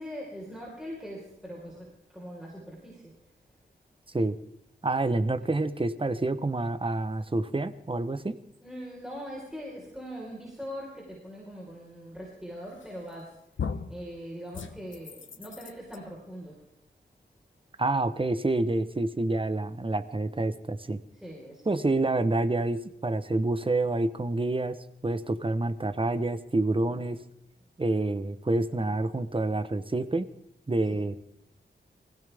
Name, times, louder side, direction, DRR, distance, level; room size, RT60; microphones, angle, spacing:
voice 1, 0.0-3.1 8.6-13.4 13.9-16.6 21.1-21.7 26.9-27.1 30.9-31.0, equal, 5° right, -4 dB, 4.4 m, -41 dB
voice 2, 4.8-8.4 17.8-21.0 21.7-24.8 25.0-27.2 27.8-30.3 30.7-31.2, right 2 dB, 30° right, 11 dB, 1.0 m, -28 dB
sound 1, 12.8-13.2 13.6-14.0 14.5-16.0, left 6 dB, 90° left, 1.0 m, -37 dB
24.0 x 16.0 x 3.5 m, 0.74 s
wide cardioid pair, 80°, 19 cm